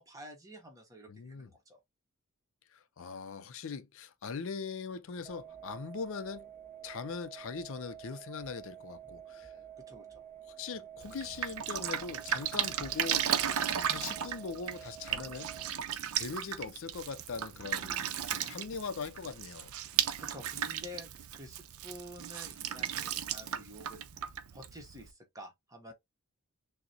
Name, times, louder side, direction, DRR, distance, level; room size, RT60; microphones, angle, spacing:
voice 1, 0.0-1.8 9.8-10.2 20.2-25.9, equal, 15° right, 1.0 m, -50 dB
voice 2, 1.1-1.5 2.7-6.5 6.8-9.5 10.5-13.6 13.9-15.5 16.2-19.7, left 5 dB, 60° left, 0.4 m, -41 dB
sound 1, 5.2-15.7, right 9 dB, 10° left, 0.5 m, -50 dB
Drip, 11.0-25.1, right 9 dB, 75° right, 0.5 m, -35 dB
6.2 x 2.1 x 2.8 m
head